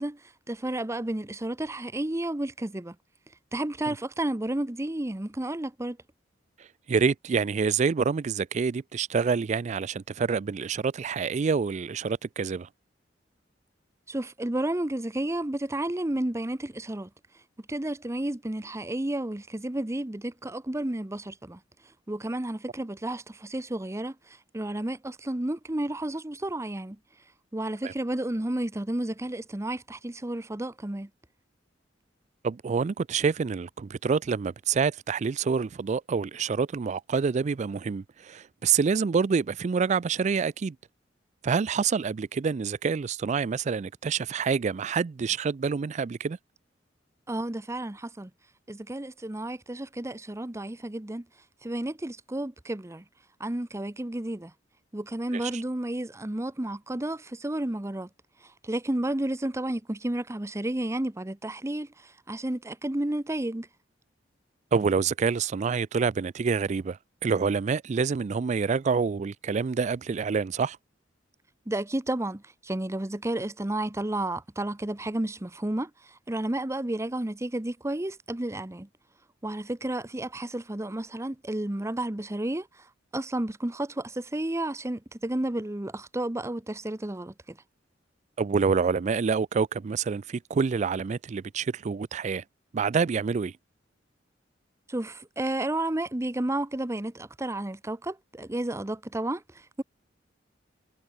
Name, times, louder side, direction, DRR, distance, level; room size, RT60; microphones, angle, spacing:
voice 1, 0.0-3.0 3.5-6.0 14.1-17.1 17.7-21.6 22.1-27.0 27.5-31.1 47.3-48.3 48.7-51.3 51.6-53.0 53.4-54.5 54.9-58.1 58.4-63.7 71.7-78.9 79.4-82.9 83.1-87.6 94.9-99.8, right 1 dB, 15° right, 0.8 m, -32 dB
voice 2, 6.9-12.7 27.8-27.9 32.4-40.8 41.4-46.4 55.4-55.6 64.7-70.8 88.4-92.4 92.7-93.5, right 5 dB, 40° right, 0.4 m, -27 dB
head